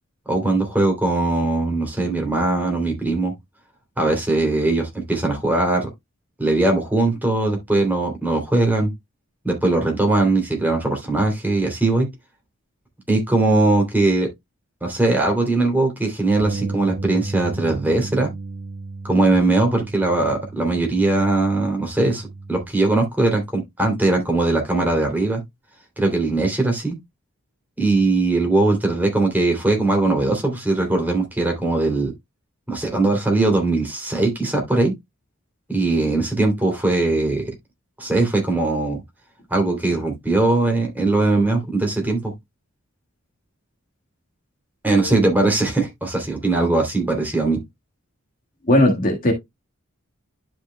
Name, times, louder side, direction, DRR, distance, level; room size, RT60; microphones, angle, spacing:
voice 1, 0.3-3.3 4.0-5.9 6.4-8.9 9.4-12.1 13.1-14.3 14.8-18.3 19.0-25.4 26.0-27.0 27.8-32.1 32.7-34.9 35.7-37.5 38.0-39.0 39.5-42.3 44.8-47.6, right 2 dB, 10° right, 2.8 m, -20 dB
Bass guitar, 16.4-22.7, right 3 dB, 65° right, 1.3 m, -34 dB
voice 2, 44.9-45.3 48.7-49.3, left 1 dB, 40° left, 1.6 m, -18 dB
12.0 x 5.2 x 2.2 m
head